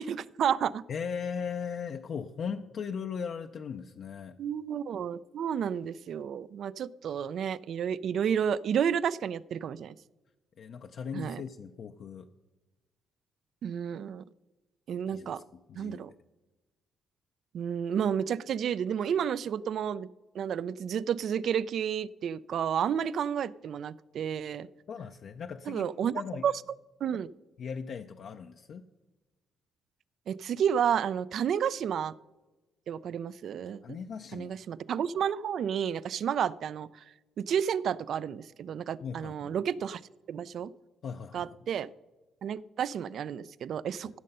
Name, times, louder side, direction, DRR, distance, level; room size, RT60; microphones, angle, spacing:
voice 1, 0.0-0.8 4.4-9.9 11.1-11.4 13.6-14.2 14.9-15.4 15.8-16.1 17.5-20.1 20.3-24.7 25.7-26.1 26.4-26.5 27.0-27.3 30.3-32.1 32.9-34.0 34.3-37.0 37.4-40.0 40.3-40.7 41.3-41.9 42.4-44.2, right 8 dB, 65° right, 19 dB, 0.3 m, -31 dB
voice 2, 0.9-4.4 10.6-12.3 15.1-15.4 15.7-16.1 24.9-25.9 26.1-26.4 27.6-28.8 33.8-34.5 39.0-39.5 41.0-41.6 44.0-44.1, left 6 dB, 60° left, 5 dB, 0.5 m, -38 dB
15.5 x 6.6 x 5.4 m, 1.1 s
cardioid pair, 90°, 0 cm